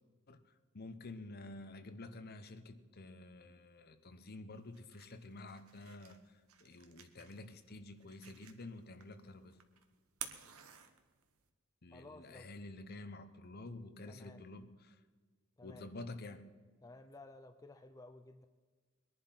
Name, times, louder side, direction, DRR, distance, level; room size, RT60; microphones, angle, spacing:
voice 1, 0.7-9.6 11.8-15.0 15.6-16.5, left 2 dB, 45° left, 10 dB, 1.0 m, -50 dB
sound 1, 4.5-11.5, right 9 dB, 80° right, 1.3 m, -54 dB
voice 2, 11.9-12.5 14.1-14.4 15.6-15.9 16.8-18.5, left 2 dB, 15° left, 7 dB, 0.5 m, -55 dB
21.0 x 11.0 x 5.8 m, 1.4 s
head